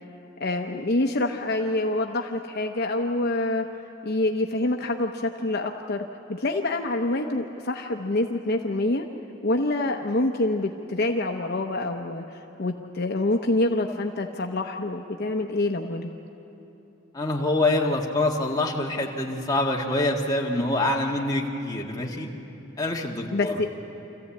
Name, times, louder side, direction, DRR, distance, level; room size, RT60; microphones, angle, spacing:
voice 1, 0.4-3.7 4.0-9.0 9.4-16.1 21.0-21.1 23.3-23.7, left 2 dB, 55° left, 3 dB, 0.8 m, -26 dB
voice 2, 17.1-22.3 22.8-23.6, left 2 dB, 20° left, -2 dB, 1.8 m, -25 dB
26.5 x 15.0 x 8.5 m, 3.0 s
head